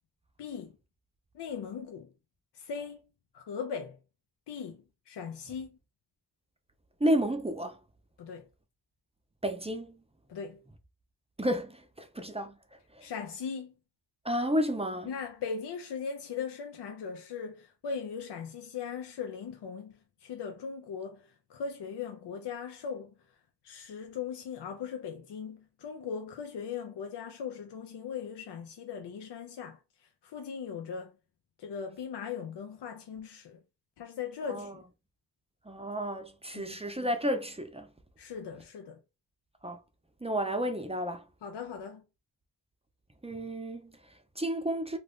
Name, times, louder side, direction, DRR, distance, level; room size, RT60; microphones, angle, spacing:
voice 1, 0.4-0.7 1.3-2.1 2.5-3.0 3.3-4.0 4.5-5.8 8.2-8.5 10.3-10.6 13.0-13.7 15.1-23.1 23.6-31.1 31.6-33.6 34.0-34.8 36.5-36.8 38.2-39.0 41.4-42.0, left 6 dB, 80° left, 0.5 m, -39 dB
voice 2, 7.0-7.8 9.4-10.0 11.4-13.1 14.2-15.1 34.5-34.8 35.7-37.9 39.6-39.8 40.2-41.3 43.2-45.0, equal, 15° right, 0.5 m, -32 dB
2.6 x 2.5 x 3.4 m
cardioid pair, 55°, 41 cm